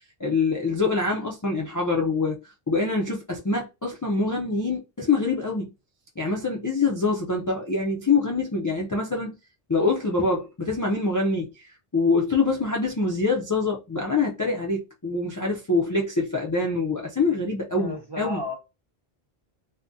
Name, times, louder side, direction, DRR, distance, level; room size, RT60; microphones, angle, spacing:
voice 1, 0.2-2.4 2.7-5.7 6.2-9.4 9.7-18.4, left 3 dB, 35° left, 0.3 m, -25 dB
voice 2, 17.8-18.5, left 1 dB, 30° right, 0.5 m, -33 dB
3.6 x 2.1 x 2.6 m
omnidirectional pair, 1.0 m